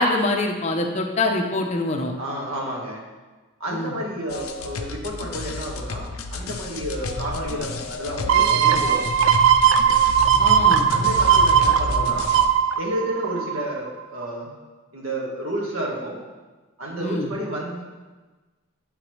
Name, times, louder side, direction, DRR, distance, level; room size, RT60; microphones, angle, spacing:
voice 1, 0.0-2.1 3.7-3.9 10.4-10.9 17.0-17.3, left 2 dB, 30° left, 2 dB, 0.6 m, -24 dB
voice 2, 2.2-3.0 3.6-9.0 10.9-12.3 12.8-14.5 14.9-16.2 16.8-17.8, right 1 dB, 85° right, -2 dB, 1.4 m, -31 dB
sound 1, 4.3-12.5, left 3 dB, 85° left, 0.5 m, -31 dB
sound 2, 8.3-13.8 14.2-14.3, right 8 dB, 65° right, 0.3 m, -18 dB
9.2 x 3.9 x 3.0 m, 1.3 s
head